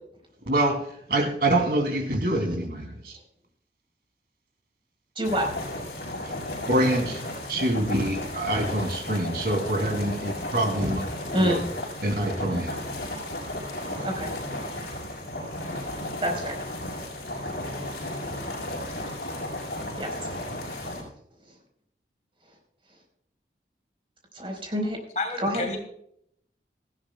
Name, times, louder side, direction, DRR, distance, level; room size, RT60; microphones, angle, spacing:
voice 1, 0.5-0.8 1.1-3.2 6.2-6.3 6.7-7.2 7.5-11.6 12.0-12.8, right 1 dB, 60° right, 3 dB, 2.8 m, -25 dB
sound 1, 5.2-21.0, left 1 dB, 65° left, 5.4 m, -34 dB
voice 2, 11.3-11.6 14.0-14.3 16.2-16.6 20.0-20.1 20.8-20.9 24.3-25.0 25.4-25.6, equal, 30° right, 1 dB, 4.4 m, -27 dB
voice 3, 25.2-25.8, left 2 dB, 40° left, 3 dB, 2.7 m, -30 dB
18.5 x 15.5 x 2.3 m, 0.70 s
head